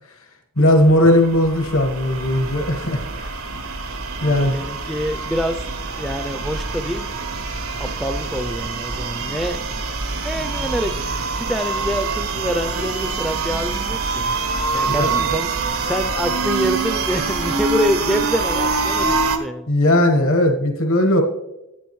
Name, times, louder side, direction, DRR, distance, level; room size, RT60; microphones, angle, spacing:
voice 1, 0.6-3.3 4.2-4.7 15.0-15.1 19.7-21.2, left 1 dB, 75° left, 4 dB, 1.3 m, -17 dB
sound 1, 0.6-19.4, right 4 dB, 90° right, 1.0 m, -25 dB
voice 2, 4.2-5.6 5.9-7.1 7.8-10.0 10.2-10.9 11.3-14.3 14.7-15.5 15.9-19.7, equal, ahead, 8 dB, 0.3 m, -26 dB
10.0 x 8.9 x 3.1 m, 0.91 s
head